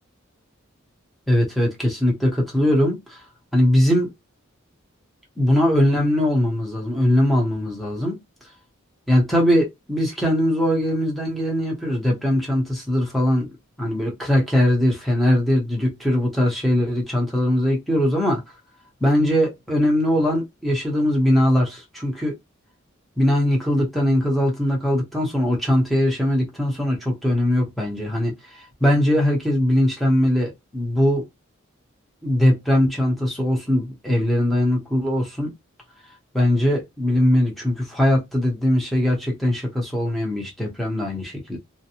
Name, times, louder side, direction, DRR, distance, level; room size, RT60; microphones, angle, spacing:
voice 1, 1.3-3.2 3.5-4.1 5.4-8.2 9.1-13.5 13.8-18.4 19.0-22.3 23.2-28.4 28.8-31.2 32.2-35.5 36.3-41.6, left 1 dB, ahead, 0.9 m, -20 dB
2.5 x 2.1 x 2.8 m
head